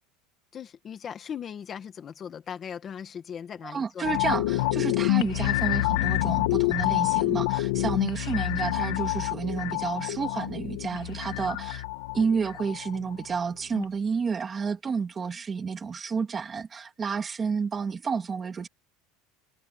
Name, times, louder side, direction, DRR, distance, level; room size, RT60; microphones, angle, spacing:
voice 1, 0.5-4.2 7.8-8.1, left 8 dB, 20° left, 2.0 m, -39 dB
voice 2, 3.7-11.8 12.1-18.7, right 5 dB, 15° right, 2.8 m, -30 dB
sound 1, 4.0-13.4 13.7-13.8, left 19 dB, 80° left, 2.0 m, -27 dB
cardioid pair, 175°, 0 cm